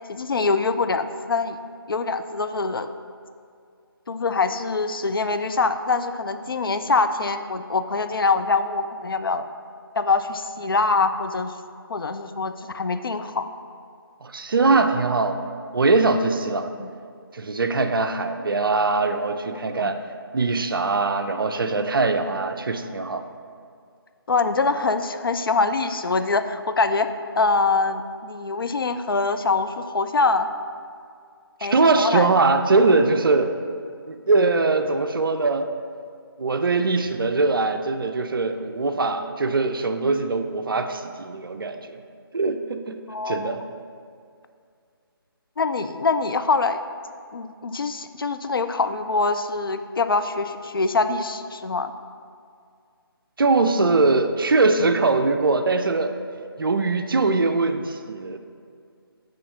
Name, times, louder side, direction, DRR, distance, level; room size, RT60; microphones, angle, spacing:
voice 1, 0.1-1.6 1.9-2.9 4.1-9.4 10.0-11.5 11.9-13.5 16.8-16.9 19.5-19.9 24.3-27.1 27.4-30.5 31.6-32.3 43.1-43.6 45.6-46.8 47.3-51.9, left 3 dB, 65° left, 9 dB, 0.4 m, -24 dB
voice 2, 14.2-16.7 17.3-20.0 20.3-23.2 31.7-33.6 34.1-35.7 36.4-42.0 42.3-43.7 53.4-56.1 56.6-58.4, right 3 dB, 60° right, 7 dB, 0.5 m, -22 dB
6.9 x 3.1 x 5.5 m, 2.3 s
figure-of-eight pair, 150°, 13 cm